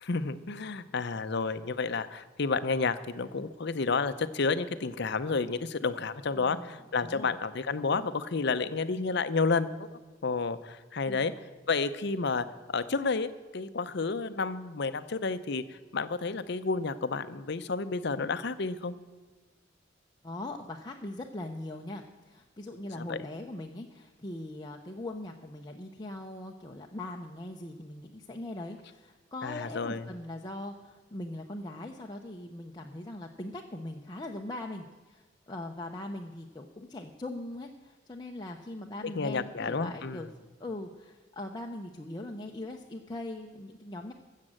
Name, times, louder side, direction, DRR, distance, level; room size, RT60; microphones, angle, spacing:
voice 1, 0.0-9.9 10.2-11.3 11.7-12.5 12.7-18.9 23.0-23.2 29.4-30.1 39.2-40.3, left 4 dB, 55° left, 12 dB, 0.6 m, -31 dB
voice 2, 6.3-7.3 11.1-11.3 20.2-40.3 40.6-44.1, left 1 dB, 20° left, 1 dB, 0.7 m, -41 dB
14.5 x 7.4 x 7.5 m, 1.3 s
head